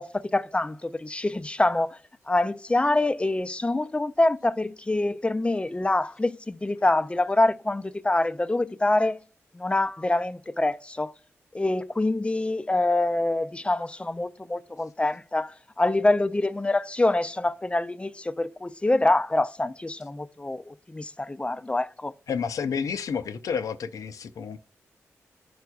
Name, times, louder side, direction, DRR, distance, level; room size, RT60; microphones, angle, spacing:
voice 1, 0.0-2.0 2.3-9.2 9.5-11.1 11.5-22.1, left 2 dB, 20° left, 0.4 m, -25 dB
voice 2, 22.3-24.6, left 6 dB, 75° left, 0.5 m, -30 dB
12.0 x 4.6 x 2.3 m
cardioid pair, 50°, 6 cm